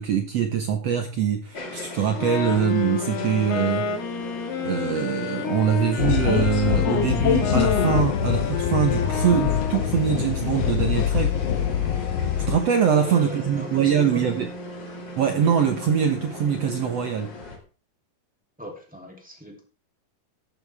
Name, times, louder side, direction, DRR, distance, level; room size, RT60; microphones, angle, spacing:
voice 1, 0.0-3.9 4.6-11.4 12.5-14.5 15.2-17.3, right 8 dB, 75° right, 6 dB, 1.5 m, -23 dB
sound 1, 1.5-17.6, left 1 dB, 30° left, 2.8 m, -38 dB
Wind instrument woodwind instrument, 2.1-10.1, left 6 dB, 90° left, 3.9 m, -30 dB
sound 2, 6.0-12.6, left 9 dB, 70° left, 1.5 m, -24 dB
voice 2, 12.9-14.3 18.6-19.6, equal, ahead, 0 dB, 2.4 m, -38 dB
14.0 x 11.0 x 3.5 m, 0.34 s
omnidirectional pair, 4.5 m